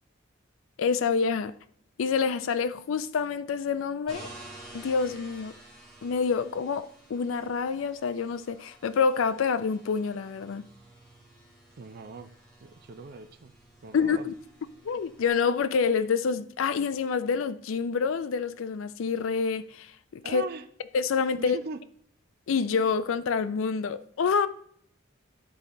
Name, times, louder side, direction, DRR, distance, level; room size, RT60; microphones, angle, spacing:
voice 1, 0.8-1.6 2.0-4.3 4.7-5.5 6.0-10.7 13.9-14.3 14.8-20.4 20.9-21.6 22.5-24.5, left 5 dB, 75° left, 0.4 m, -27 dB
sound 1, 4.1-15.3, right 1 dB, 5° left, 2.7 m, -51 dB
voice 2, 11.8-12.3 12.6-13.5 13.8-14.3 20.2-20.6 21.4-21.8, right 4 dB, 50° right, 0.4 m, -40 dB
10.5 x 3.9 x 4.1 m
head